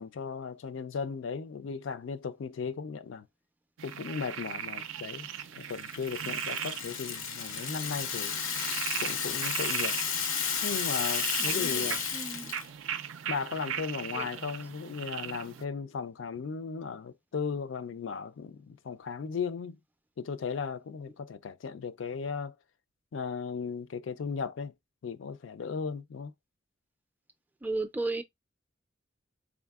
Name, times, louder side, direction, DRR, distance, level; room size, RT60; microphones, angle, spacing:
voice 1, 0.0-3.3 3.8-5.3 5.5-8.4 9.0-10.0 10.6-12.0 13.3-19.8 20.2-22.6 23.1-24.7 25.0-26.3, left 5 dB, 70° left, 0.4 m, -36 dB
sound 1, 3.8-15.6, right 9 dB, 80° right, 0.4 m, -38 dB
Rattle (instrument), 5.7-12.7, left 6 dB, 90° left, 0.8 m, -33 dB
voice 2, 11.4-12.5 14.2-14.3 27.6-28.2, right 2 dB, 10° right, 0.3 m, -35 dB
4.0 x 3.5 x 2.3 m
head